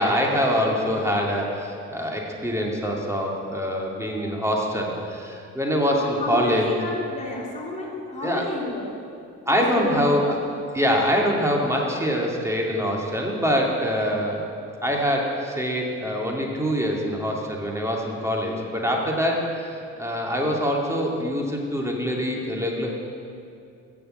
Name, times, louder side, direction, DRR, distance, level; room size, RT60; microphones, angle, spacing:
voice 1, 0.0-6.7 8.2-8.5 9.5-10.4 10.7-14.5 14.8-22.9, equal, 10° right, -1 dB, 2.5 m, -24 dB
voice 2, 5.9-8.9 9.5-10.1, left 2 dB, 25° left, -4 dB, 3.3 m, -31 dB
14.5 x 7.0 x 8.0 m, 2.4 s
cardioid pair, 90°, 30 cm